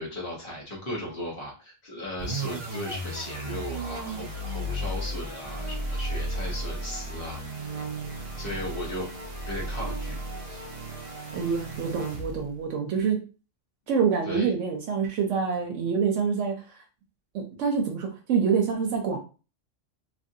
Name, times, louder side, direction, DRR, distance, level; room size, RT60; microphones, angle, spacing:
voice 1, 0.0-7.9 8.4-9.1 9.4-10.2 10.5-10.6 14.2-14.5, left 1 dB, 50° left, -3 dB, 1.3 m, -36 dB
sound 1, 2.2-12.6, right 1 dB, 45° right, 0.4 m, -34 dB
voice 2, 11.3-13.2 13.9-16.8 17.3-19.2, right 6 dB, 75° right, 2 dB, 0.9 m, -26 dB
3.1 x 2.5 x 2.6 m, 0.34 s
omnidirectional pair, 1.3 m